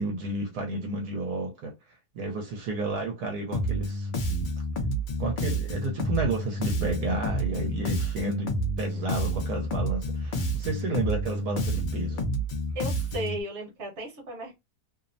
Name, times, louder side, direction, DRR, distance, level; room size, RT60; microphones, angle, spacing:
voice 1, 0.0-1.7 2.1-4.1 5.2-12.3, right 2 dB, 75° right, 1.2 m, -31 dB
Bass guitar, 3.5-13.4, right 1 dB, 90° left, 0.4 m, -29 dB
voice 2, 12.7-14.5, right 1 dB, 50° right, 1.3 m, -35 dB
3.0 x 2.0 x 2.5 m
omnidirectional pair, 1.7 m